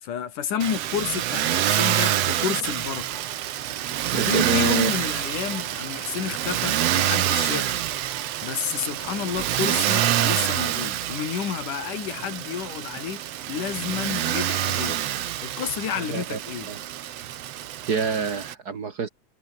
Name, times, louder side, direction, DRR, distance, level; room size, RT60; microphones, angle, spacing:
voice 1, 0.0-3.1 4.1-7.8 8.4-13.2 13.5-15.0 15.4-16.7, left 8 dB, 85° left, 3.9 m, -30 dB
Motor vehicle (road), 0.6-18.5, right 12 dB, 60° right, 2.0 m, -27 dB
voice 2, 4.1-4.9 16.0-16.4 16.7-16.8 17.9-19.1, right 6 dB, 45° right, 1.3 m, -27 dB
omnidirectional pair, 3.5 m